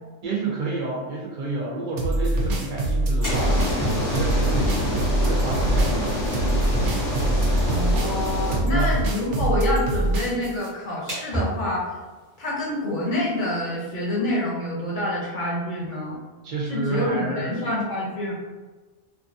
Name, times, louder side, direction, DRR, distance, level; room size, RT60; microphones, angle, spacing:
voice 1, 0.2-6.6 7.3-7.5 8.7-8.9 9.4-9.5 16.4-17.6, right 3 dB, 55° right, -2 dB, 0.7 m, -30 dB
sound 1, 2.0-10.7, right 1 dB, 80° right, 0.9 m, -24 dB
sound 2, 2.9-14.2, right 1 dB, 20° right, 0.7 m, -38 dB
sound 3, 3.2-8.6, left 1 dB, 90° left, 1.0 m, -25 dB
voice 2, 7.7-11.9 12.4-16.2 16.7-18.3, left 1 dB, 50° left, -6 dB, 0.8 m, -27 dB
2.6 x 2.5 x 2.5 m, 1.3 s
omnidirectional pair, 1.2 m